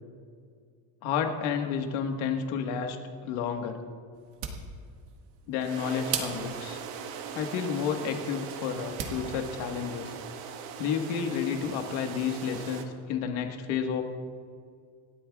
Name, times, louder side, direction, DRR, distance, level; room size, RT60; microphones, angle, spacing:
voice 1, 1.0-3.0 3.2-3.8 5.5-6.8 7.3-10.1 10.8-14.0, left 7 dB, 85° left, 4 dB, 1.6 m, -31 dB
sound 1, 4.1-9.2, right 7 dB, 55° right, 1.7 m, -40 dB
sound 2, 5.6-12.9, right 7 dB, 70° right, 1.4 m, -40 dB
28.0 x 12.5 x 2.4 m, 2.1 s
cardioid pair, 170°, 46 cm